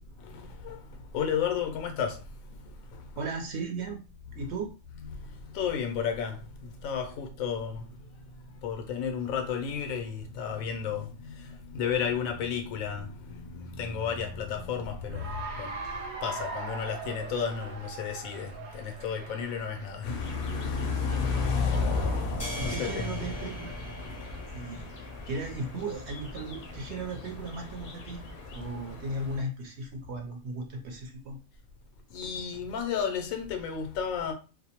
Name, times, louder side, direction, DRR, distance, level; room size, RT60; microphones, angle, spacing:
voice 1, 0.2-3.3 4.3-4.5 4.9-8.0 8.6-15.8 16.2-20.2 20.7-21.1 21.6-22.0 22.6-23.2 32.1-34.3, left 7 dB, 90° left, 1.0 m, -33 dB
voice 2, 3.2-4.0 4.4-4.7 21.1-21.3 22.6-23.7 24.5-24.9 25.3-28.2 28.5-31.4, right 2 dB, 60° right, 0.8 m, -36 dB
Cheering / Applause, 15.0-20.2, right 3 dB, 80° right, 0.4 m, -40 dB
sound 1, 20.0-29.4, left 4 dB, 60° left, 0.6 m, -33 dB
sound 2, 22.4-26.8, left 1 dB, 20° left, 0.5 m, -43 dB
2.5 x 2.0 x 2.8 m
omnidirectional pair, 1.4 m